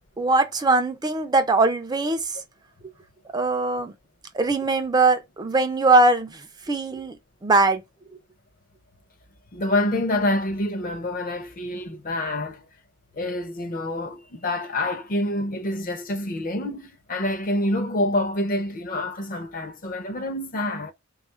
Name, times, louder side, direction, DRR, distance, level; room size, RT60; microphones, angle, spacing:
voice 1, 0.2-2.4 3.3-3.9 4.3-7.2 7.4-7.8, right 3 dB, 20° right, 0.4 m, -21 dB
voice 2, 9.5-12.7 13.2-20.9, left 1 dB, 40° left, 0.6 m, -27 dB
3.4 x 2.4 x 4.3 m
head